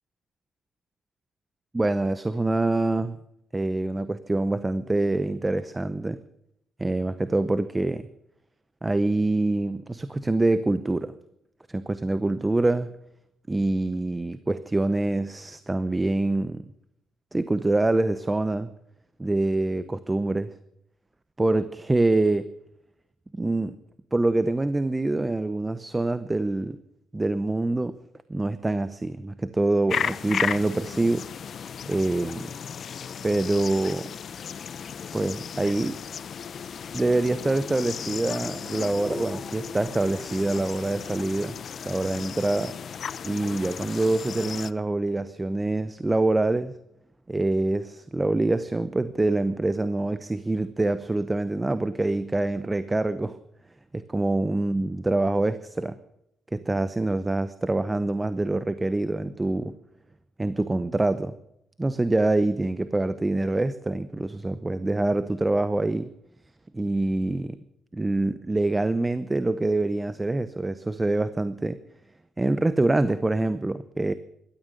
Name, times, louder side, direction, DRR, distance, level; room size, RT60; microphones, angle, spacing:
voice 1, 1.7-3.2 3.5-6.2 6.8-8.1 8.8-11.1 11.7-12.9 13.5-16.6 17.3-18.7 19.2-20.5 21.4-22.4 23.3-23.8 24.1-26.8 27.1-27.9 28.3-31.3 31.9-32.5 33.2-34.1 35.1-36.0 36.9-41.6 41.9-42.7 43.2-46.7 47.3-53.4 53.9-56.0 56.5-59.8 60.4-61.3 61.8-66.1 66.7-67.6 67.9-71.8 72.4-74.1, right 2 dB, 15° right, 13 dB, 0.8 m, -25 dB
sound 1, 29.9-44.7, left 7 dB, 55° left, 0.6 m, -35 dB
sound 2, 34.6-40.6, equal, 5° left, 4.4 m, -44 dB
16.5 x 13.0 x 6.6 m, 0.80 s
cardioid pair, 90°, 0 cm